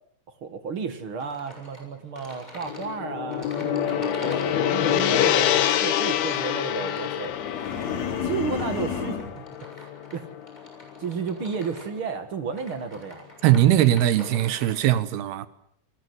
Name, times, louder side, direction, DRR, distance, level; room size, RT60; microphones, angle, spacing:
voice 1, 0.4-7.3 8.2-9.5 9.8-10.3 11.0-13.2, right 5 dB, 45° right, 2.0 m, -33 dB
sound 1, 1.2-14.8, left 1 dB, 10° left, 6.9 m, -46 dB
Gong, 2.6-11.0, left 10 dB, 85° left, 3.4 m, -26 dB
sound 2, 7.3-9.4, left 7 dB, 50° left, 3.5 m, -31 dB
voice 2, 13.4-15.5, right 12 dB, 85° right, 3.2 m, -20 dB
28.0 x 20.0 x 8.0 m
omnidirectional pair, 4.4 m